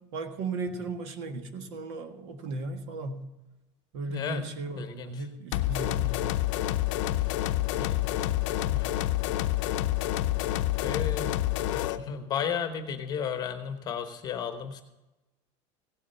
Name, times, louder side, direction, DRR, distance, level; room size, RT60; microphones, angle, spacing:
voice 1, 0.1-3.3 3.9-6.3, right 3 dB, 65° right, 7 dB, 1.6 m, -36 dB
voice 2, 4.1-4.4 4.7-5.1 6.0-6.1 7.8-8.3 8.7-9.0 10.8-11.3 11.7-14.8, left 7 dB, 25° left, 8 dB, 1.0 m, -34 dB
sound 1, 5.5-12.0, left 14 dB, 85° left, 0.6 m, -28 dB
16.5 x 7.4 x 5.5 m, 1.0 s
cardioid pair, 175°, 16 cm